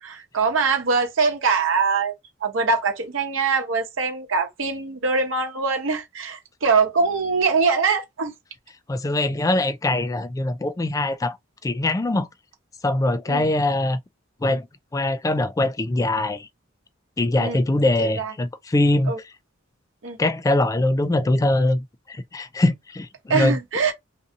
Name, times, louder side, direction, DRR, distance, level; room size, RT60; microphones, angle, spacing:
voice 1, 0.0-2.1 2.4-8.3 13.3-13.4 17.4-17.6 18.0-18.3 19.1-19.2 20.0-20.2 23.3-23.9, right 4 dB, 85° right, 0.8 m, -23 dB
voice 2, 8.9-11.4 11.6-12.3 12.8-14.0 14.4-14.7 14.9-16.5 17.2-19.1 20.2-23.6, left 2 dB, 15° left, 0.3 m, -22 dB
2.6 x 2.6 x 2.5 m
head